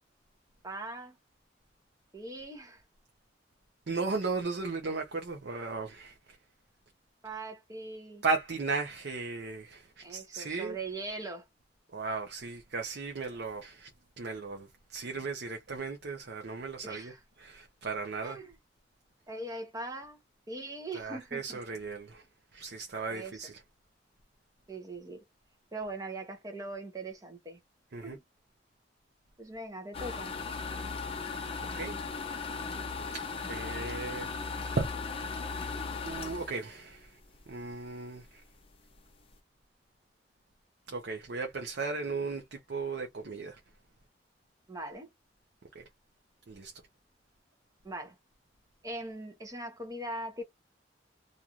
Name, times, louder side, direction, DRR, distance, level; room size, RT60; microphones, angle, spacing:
voice 1, 0.6-1.1 2.1-2.8 7.2-8.2 10.0-11.5 16.8-17.2 18.2-18.6 19.3-20.2 20.5-21.6 23.1-23.4 24.7-25.2 25.7-27.6 28.0-28.2 29.4-30.3 44.7-45.1 47.8-48.2 48.8-50.4, right 2 dB, 20° right, 0.8 m, -41 dB
voice 2, 3.9-6.4 8.2-10.8 11.9-13.9 14.2-17.1 17.4-18.4 20.9-22.2 22.5-23.6 27.9-28.2 31.6-32.0 33.1-34.3 34.8-34.9 35.2-35.3 36.0-37.2 37.5-38.4 40.9-43.6 45.7-45.8 46.5-46.7, right 4 dB, 65° right, 0.6 m, -36 dB
sound 1, 29.9-37.7 38.1-38.2 38.6-38.7 38.9-39.3, left 4 dB, 30° left, 0.6 m, -37 dB
2.5 x 2.4 x 2.8 m
head